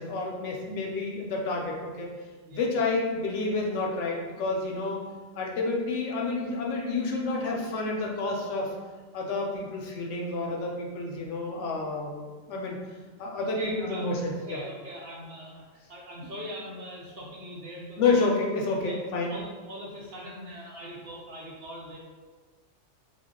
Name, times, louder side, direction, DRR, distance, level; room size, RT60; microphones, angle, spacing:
voice 1, 0.0-2.1 2.5-5.0 5.4-8.7 9.1-12.2 12.5-12.8 13.2-14.6 18.0-19.4, left 3 dB, 75° left, -1 dB, 0.9 m, -29 dB
voice 2, 2.4-2.9 13.6-18.3 18.8-19.0 19.3-22.0, equal, 65° right, -3 dB, 0.7 m, -41 dB
2.3 x 2.2 x 3.6 m, 1.4 s
omnidirectional pair, 1.3 m